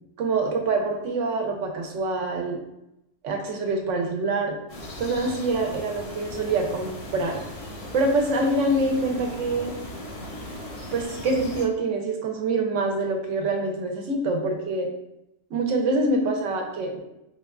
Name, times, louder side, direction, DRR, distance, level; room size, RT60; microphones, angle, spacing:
voice 1, 0.2-2.6 3.2-4.6 5.0-7.4 7.9-9.7 10.9-14.9 15.5-17.0, right 2 dB, 80° right, 2 dB, 1.0 m, -25 dB
sound 1, 4.7-11.6, left 1 dB, 75° left, 1.2 m, -38 dB
4.4 x 2.2 x 2.3 m, 0.87 s
omnidirectional pair, 1.3 m